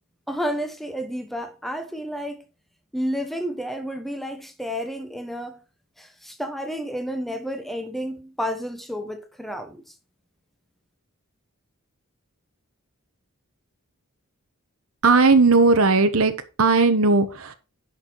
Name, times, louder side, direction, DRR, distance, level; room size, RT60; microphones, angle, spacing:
voice 1, 0.3-2.4 2.9-5.6 6.0-9.8, equal, ahead, 1.2 m, -31 dB
voice 2, 15.0-16.3 16.6-17.5, right 3 dB, 70° right, 1.2 m, -17 dB
10.5 x 5.9 x 4.7 m
head